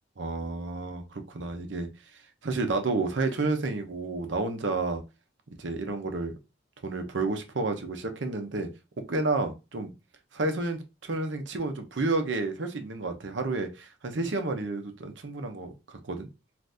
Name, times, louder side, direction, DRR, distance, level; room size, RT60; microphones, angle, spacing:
voice 1, 0.2-1.9 2.4-5.0 5.6-6.3 6.8-8.7 9.1-9.9 10.3-16.3, right 3 dB, 80° right, 0.7 m, -30 dB
2.6 x 2.6 x 3.4 m
head